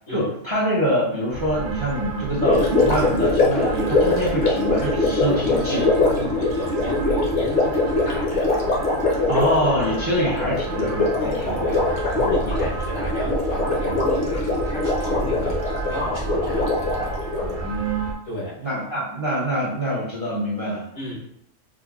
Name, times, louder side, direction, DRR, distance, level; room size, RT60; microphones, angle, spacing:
voice 1, 0.1-5.8 9.3-11.6 12.0-12.1 12.4-12.6 17.4-18.1 18.6-20.8, equal, 35° right, -6 dB, 0.5 m, -25 dB
sound 1, 1.3-18.1, right 3 dB, 80° right, 0.9 m, -31 dB
Gurgling, 2.4-17.6, left 2 dB, 45° left, 0.7 m, -23 dB
voice 2, 5.3-8.5 11.2-16.7 18.3-18.6 20.9-21.2, left 1 dB, 85° left, -8 dB, 1.9 m, -32 dB
4.8 x 2.1 x 2.3 m, 0.75 s
omnidirectional pair, 1.3 m